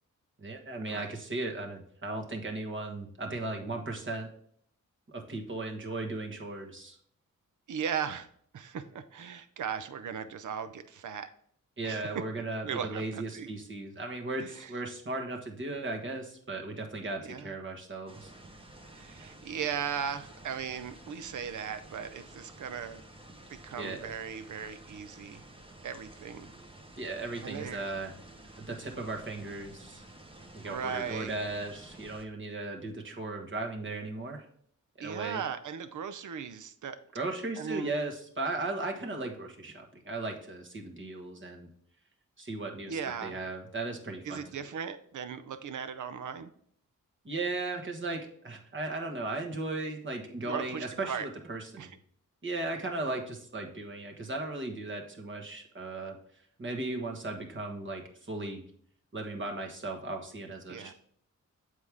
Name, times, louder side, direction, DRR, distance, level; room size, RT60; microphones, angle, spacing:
voice 1, 0.4-4.3 5.1-7.0 11.8-18.3 23.8-24.1 26.9-28.1 28.6-30.0 30.5-34.5 35.0-35.4 37.1-41.7 42.4-44.4 47.2-51.9 52.4-56.2 56.6-58.6 59.1-60.9, right 2 dB, 35° right, 2 dB, 1.4 m, -36 dB
voice 2, 7.7-8.3 8.5-11.3 11.8-12.0 12.6-13.5 14.4-14.7 17.2-17.5 18.9-23.0 23.5-25.4 25.8-26.5 27.4-27.8 30.7-31.4 35.0-37.0 37.6-38.0 42.9-43.4 44.2-46.5 50.4-51.3 51.8-51.9 60.7-60.9, right 7 dB, 70° right, 12 dB, 0.6 m, -37 dB
sound 1, 18.1-32.2, right 1 dB, 15° right, 1.1 m, -51 dB
7.5 x 4.8 x 3.5 m, 0.64 s
cardioid pair, 75°, 32 cm